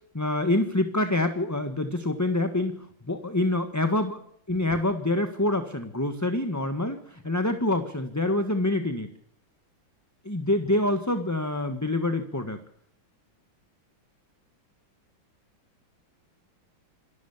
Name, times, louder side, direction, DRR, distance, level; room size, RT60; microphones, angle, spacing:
voice 1, 0.1-4.2 4.5-9.1 10.2-12.6, left 1 dB, 10° left, 8 dB, 1.4 m, -26 dB
27.0 x 13.5 x 7.3 m, 0.65 s
omnidirectional pair, 2.2 m